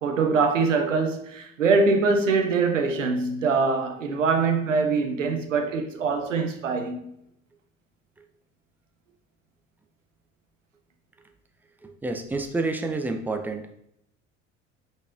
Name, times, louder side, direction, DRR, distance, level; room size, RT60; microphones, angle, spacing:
voice 1, 0.0-7.1, right 4 dB, 80° right, 0.8 m, -23 dB
voice 2, 11.8-13.7, right 3 dB, 5° right, 0.4 m, -29 dB
5.2 x 4.1 x 2.5 m
figure-of-eight pair, 65°, 38 cm